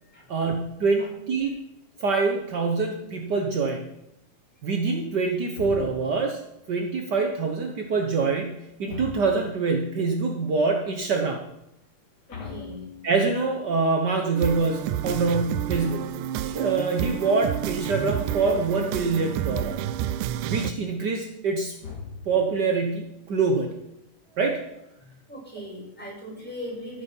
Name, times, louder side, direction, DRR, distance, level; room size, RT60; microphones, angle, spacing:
voice 1, 0.3-1.6 2.0-3.9 4.6-6.4 6.7-11.4 13.0-19.8 20.4-21.8 22.2-23.8 24.4-24.7, right 4 dB, 65° right, 3 dB, 1.0 m, -25 dB
sound 1, 5.6-6.3 8.9-9.7 12.3-13.5 18.4-19.1 21.8-22.6, left 6 dB, 45° left, 3.5 m, -40 dB
voice 2, 12.3-12.8 24.3-24.4 25.0-27.0, equal, 5° left, -5 dB, 5.8 m, -39 dB
sound 2, 14.4-20.7, right 11 dB, 85° right, 2.1 m, -30 dB
15.0 x 8.5 x 5.7 m, 0.84 s
omnidirectional pair, 3.6 m